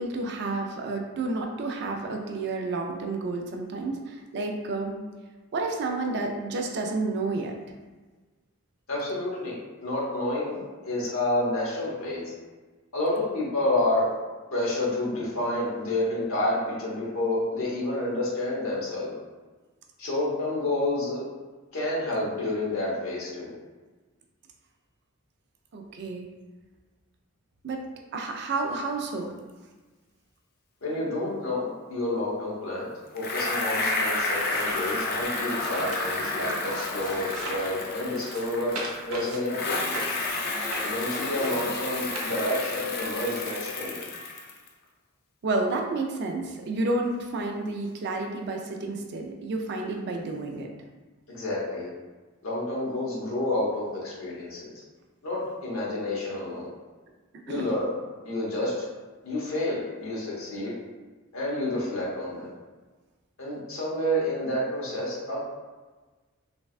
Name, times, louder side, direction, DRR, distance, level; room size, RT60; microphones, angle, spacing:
voice 1, 0.0-5.0 5.5-7.5 25.7-26.3 27.6-27.9 28.1-29.3 45.4-50.7 57.5-57.7, right 3 dB, 50° right, 2 dB, 0.3 m, -30 dB
voice 2, 8.9-9.5 9.8-12.2 12.9-14.1 14.5-19.1 20.0-21.2 21.7-23.5 30.8-38.8 39.0-40.1 40.8-44.0 51.3-51.9 52.4-54.7 55.2-56.7 57.5-57.9 58.2-58.8 59.2-60.7 61.3-62.5 63.4-65.4, left 1 dB, 70° left, -6 dB, 1.0 m, -29 dB
Bicycle, 33.2-39.0 39.4-44.7, left 2 dB, 45° left, 0.3 m, -31 dB
sound 1, 34.2-37.7 38.1-42.8 43.5-43.6, right 2 dB, 90° right, 0.6 m, -40 dB
3.3 x 2.2 x 2.4 m, 1.3 s
head